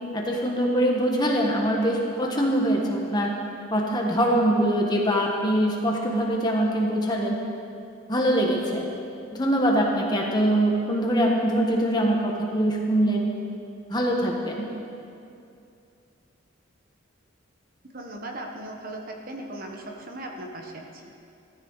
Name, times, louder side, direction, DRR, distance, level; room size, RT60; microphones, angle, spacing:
voice 1, 0.1-3.3 3.7-7.4 8.1-8.8 9.3-13.3 13.9-14.7, right 1 dB, 20° left, -1 dB, 1.5 m, -23 dB
voice 2, 17.9-21.0, right 1 dB, 45° right, 1 dB, 1.3 m, -38 dB
17.0 x 14.0 x 4.1 m, 2.6 s
head